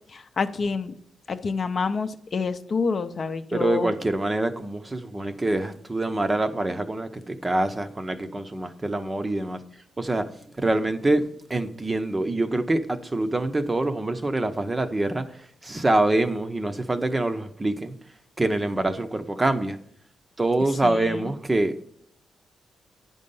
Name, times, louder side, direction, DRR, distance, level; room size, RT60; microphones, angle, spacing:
voice 1, 0.1-0.9 1.3-3.9 20.8-21.3, left 5 dB, 45° left, 0.6 m, -28 dB
voice 2, 3.5-9.6 10.0-10.3 10.6-17.9 18.4-19.8 20.4-21.8, right 2 dB, 20° right, 0.6 m, -25 dB
9.6 x 5.4 x 5.4 m
cardioid pair, 115°, 0 cm